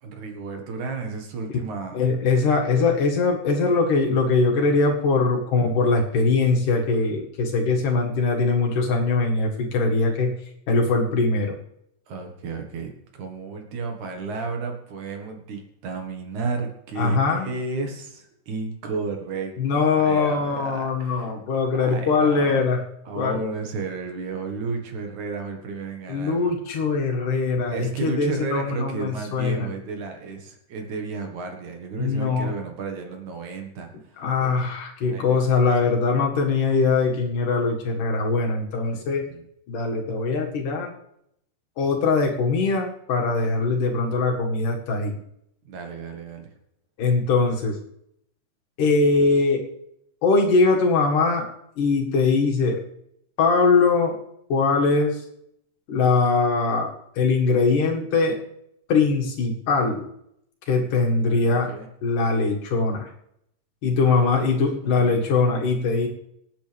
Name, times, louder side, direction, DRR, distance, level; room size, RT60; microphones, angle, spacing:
voice 1, 0.0-2.0 12.1-21.3 21.8-22.6 23.1-26.5 27.7-34.7 35.0-35.7 38.9-39.4 45.6-46.5 60.7-61.9 63.9-64.6 64.8-65.2, right 4 dB, 65° right, 3 dB, 3.0 m, -33 dB
voice 2, 1.9-10.3 10.7-11.6 17.0-17.5 19.6-22.8 23.2-23.4 26.1-29.7 32.0-32.5 34.2-39.3 39.7-40.9 41.8-45.2 47.0-47.8 48.8-49.6 50.2-51.5 51.8-52.8 53.4-54.2 54.5-55.2 55.9-58.4 58.9-60.1 60.7-61.7 62.0-63.1 63.8-66.1, left 4 dB, 70° left, 1 dB, 3.4 m, -21 dB
25.5 x 9.1 x 3.4 m, 0.77 s
omnidirectional pair, 3.8 m